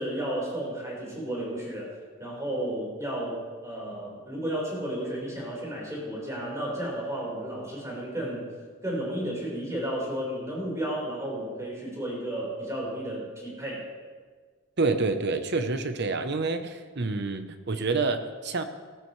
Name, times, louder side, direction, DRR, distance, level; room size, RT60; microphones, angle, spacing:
voice 1, 0.0-1.9 2.2-8.5 8.8-13.9, right 1 dB, 15° right, -4 dB, 4.6 m, -33 dB
voice 2, 14.8-18.6, right 3 dB, 55° right, 8 dB, 0.9 m, -28 dB
18.0 x 13.5 x 3.3 m, 1.5 s
head